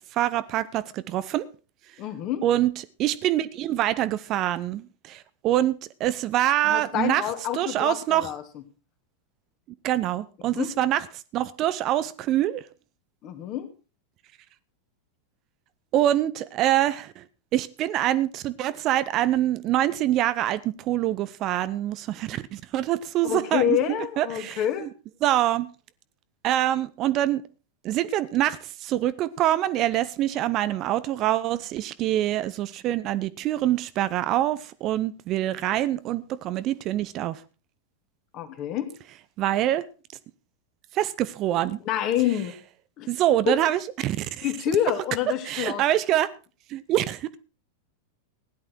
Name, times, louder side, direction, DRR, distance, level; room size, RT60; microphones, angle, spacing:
voice 1, 0.1-1.4 2.4-2.7 3.0-7.2 7.5-8.3 9.8-11.0 11.3-12.6 15.9-17.2 17.5-23.8 24.2-24.9 25.2-25.7 26.4-27.4 27.8-37.4 39.4-39.8 40.9-41.8 43.1-44.4 45.5-46.3 46.7-47.3, right 13 dB, 35° right, 0.7 m, -25 dB
voice 2, 2.0-2.5 6.6-8.4 10.5-10.7 13.2-13.7 23.2-24.9 38.3-38.9 41.8-42.6 43.0-43.1 43.5-43.6 44.4-45.8, left 11 dB, 40° left, 2.4 m, -27 dB
16.5 x 11.0 x 4.6 m
figure-of-eight pair, 90°, 0 cm